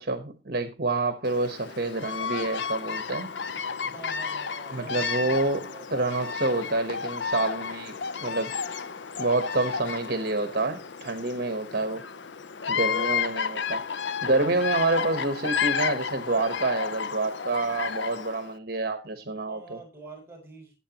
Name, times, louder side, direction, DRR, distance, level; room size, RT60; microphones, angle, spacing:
voice 1, 0.0-3.4 4.7-7.9 8.2-8.5 9.2-12.0 12.7-13.9 14.2-19.8, right 2 dB, 55° right, 1.1 m, -28 dB
Bird vocalization bird call bird song, 1.2-18.5, left 6 dB, 80° left, 0.7 m, -32 dB
voice 2, 3.8-6.3 11.7-12.0 19.4-20.7, right 3 dB, 15° right, 5.6 m, -47 dB
19.0 x 8.6 x 2.9 m
head